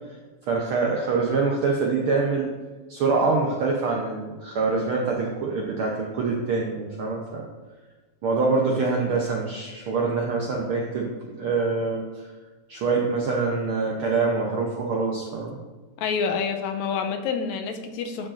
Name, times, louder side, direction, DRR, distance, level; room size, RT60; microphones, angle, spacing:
voice 1, 0.5-2.5 2.9-7.5 8.2-12.3 12.7-15.5, right 4 dB, 80° right, -1 dB, 1.1 m, -25 dB
voice 2, 16.0-18.3, left 6 dB, 80° left, 5 dB, 1.9 m, -27 dB
12.5 x 5.0 x 2.5 m, 1.3 s
omnidirectional pair, 3.4 m